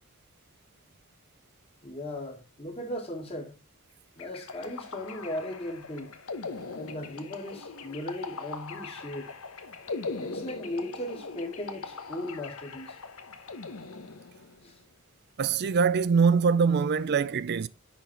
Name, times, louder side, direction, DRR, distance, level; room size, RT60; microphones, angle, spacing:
voice 1, 1.8-3.6 4.2-6.1 6.8-9.3 10.2-13.0 14.6-14.7, left 1 dB, 25° left, 2.0 m, -37 dB
sound 1, 4.2-14.6, left 4 dB, 75° left, 1.0 m, -40 dB
voice 2, 15.4-17.7, right 5 dB, 50° right, 0.4 m, -23 dB
10.5 x 4.2 x 4.2 m
head